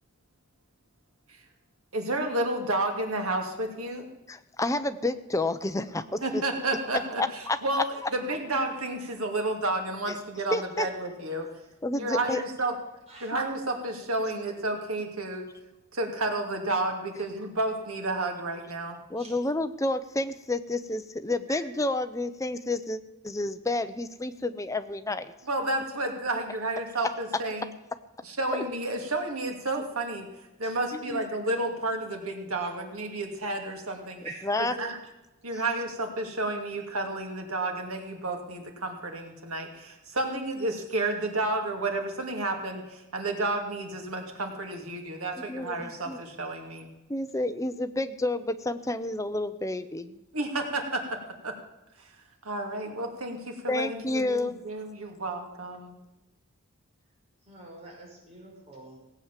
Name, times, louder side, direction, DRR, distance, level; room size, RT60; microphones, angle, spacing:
voice 1, 1.9-4.1 6.2-11.5 12.0-12.7 13.2-15.4 15.9-19.0 25.5-27.7 28.2-30.3 30.6-34.2 34.6-35.0 35.4-46.9 50.3-51.2 51.4-51.5 52.4-56.0, right 2 dB, 80° right, 3 dB, 2.5 m, -31 dB
voice 2, 4.3-6.4 7.2-7.8 10.1-10.2 10.5-10.9 11.8-12.4 19.1-25.3 28.5-28.6 30.9-31.2 34.4-34.7 35.5-35.6 45.5-46.2 47.1-50.2 53.7-54.6, left 2 dB, 15° left, 10 dB, 0.6 m, -30 dB
voice 3, 57.5-59.0, right 2 dB, 30° right, -2 dB, 5.4 m, -44 dB
17.5 x 8.2 x 7.4 m, 0.99 s
head